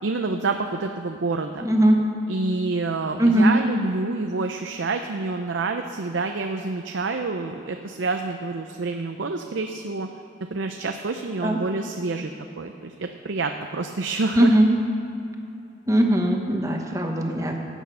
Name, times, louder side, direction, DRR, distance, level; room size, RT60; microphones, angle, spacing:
voice 1, 0.0-1.7 2.3-10.1 10.5-12.3 12.6-14.5, right 3 dB, 75° right, 5 dB, 0.6 m, -28 dB
voice 2, 1.6-2.0 3.2-3.5 11.4-11.6 14.3-14.7 15.9-17.6, right 1 dB, 15° right, 2 dB, 1.2 m, -19 dB
16.5 x 8.2 x 5.6 m, 2.6 s
head